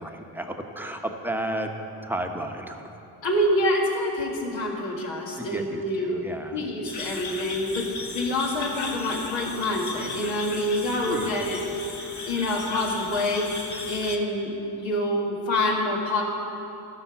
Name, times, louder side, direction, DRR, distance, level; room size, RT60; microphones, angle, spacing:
voice 1, 0.0-2.8 5.4-6.7 11.1-11.4, right 1 dB, 5° right, 4 dB, 1.0 m, -33 dB
voice 2, 3.2-6.2 6.5-7.9 8.1-12.0 12.3-14.5 14.8-16.2, left 1 dB, 75° left, -2 dB, 1.9 m, -26 dB
sound 1, 6.8-14.2, left 3 dB, 40° left, 1.2 m, -36 dB
13.0 x 5.4 x 7.1 m, 3.0 s
supercardioid pair, 60°, 46 cm